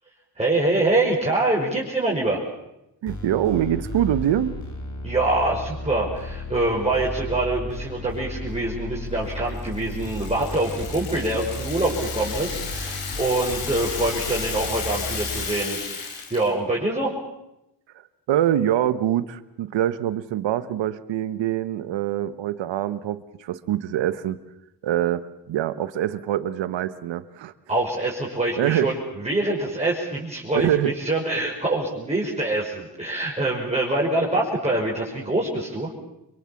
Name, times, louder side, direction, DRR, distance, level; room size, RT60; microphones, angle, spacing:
voice 1, 0.4-2.4 5.0-17.1 27.7-35.9, right 2 dB, 15° right, -4 dB, 5.6 m, -25 dB
voice 2, 3.0-4.6 18.3-24.4 24.8-27.5 28.6-28.9 30.5-30.9, right 11 dB, 80° right, 13 dB, 1.2 m, -24 dB
sound 1, 3.1-15.5, left 2 dB, 40° left, 5.6 m, -34 dB
Rattle (instrument), 9.6-16.5, left 5 dB, 80° left, 5.2 m, -33 dB
26.0 x 23.0 x 7.2 m, 0.87 s
cardioid pair, 75°, 43 cm